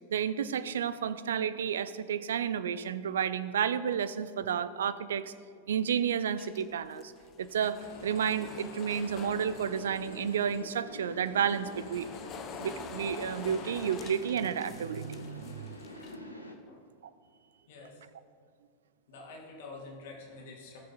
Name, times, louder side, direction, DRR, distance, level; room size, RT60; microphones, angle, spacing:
voice 1, 0.1-5.3 5.7-7.1 7.4-12.1 12.6-15.5, right 8 dB, 65° right, 15 dB, 0.5 m, -31 dB
sound 1, 6.4-10.7 11.1-16.2, left 7 dB, 30° left, 0.7 m, -47 dB
sound 2, 7.8-16.6, left 1 dB, 90° left, 1.1 m, -46 dB
voice 2, 16.4-16.8 17.7-18.1 19.1-20.8, left 3 dB, 55° left, -1 dB, 2.7 m, -48 dB
18.5 x 6.5 x 4.1 m, 2.2 s
figure-of-eight pair, 90°, 0 cm